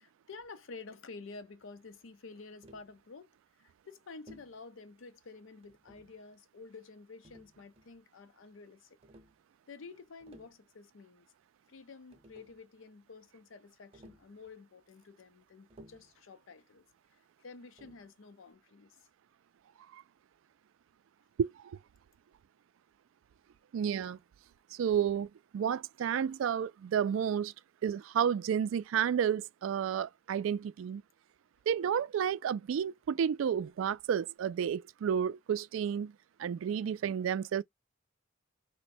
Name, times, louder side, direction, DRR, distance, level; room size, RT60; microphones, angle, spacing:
voice 1, 0.0-3.3 3.6-9.0 9.7-11.3 11.7-16.9 17.4-19.0, left 4 dB, 70° left, 0.5 m, -50 dB
Tap, 2.6-2.9 4.3-4.6 5.6-6.2 7.2-8.0 9.0-9.4 10.1-10.6 11.8-11.9 12.1-12.6 13.9-14.3 15.7-16.2 17.8-18.1, equal, 30° right, 0.7 m, -57 dB
voice 2, 21.4-21.8 23.7-24.2 24.7-27.5 27.8-31.0 31.7-36.1 36.4-37.6, right 8 dB, 75° right, 0.3 m, -31 dB
3.1 x 2.1 x 4.2 m
head